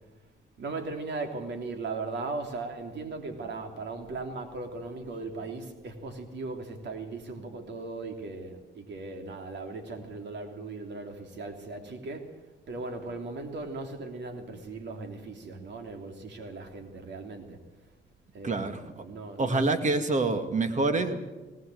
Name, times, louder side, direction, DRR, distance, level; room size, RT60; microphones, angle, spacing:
voice 1, 0.6-12.4 12.7-17.6 18.3-19.8, right 3 dB, 60° right, 5 dB, 3.2 m, -38 dB
voice 2, 18.4-19.0 19.4-21.3, right 3 dB, 40° right, 8 dB, 2.1 m, -27 dB
19.0 x 19.0 x 7.9 m, 1.2 s
cardioid pair, 90°, 20 cm